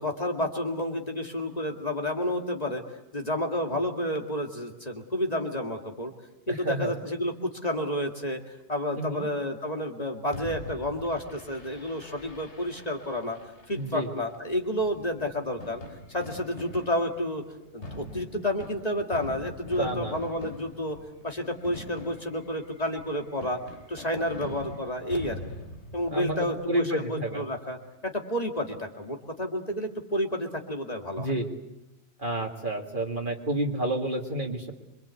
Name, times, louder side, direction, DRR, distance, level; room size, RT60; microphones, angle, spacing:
voice 1, 0.0-2.8 3.1-6.1 6.5-8.4 8.7-13.4 13.7-15.8 16.1-17.4 17.7-21.0 21.2-23.6 23.9-25.4 25.9-27.8 28.0-31.3, left 1 dB, 35° left, 2 dB, 2.3 m, -30 dB
voice 2, 6.5-6.9 9.0-9.3 13.8-14.1 19.8-20.2 26.1-27.4 31.2-31.5 32.2-34.7, right 1 dB, 45° right, 0 dB, 2.2 m, -30 dB
Fireworks, 10.3-26.5, left 1 dB, 75° left, 3.0 m, -44 dB
26.5 x 24.0 x 8.3 m, 0.93 s
omnidirectional pair, 1.2 m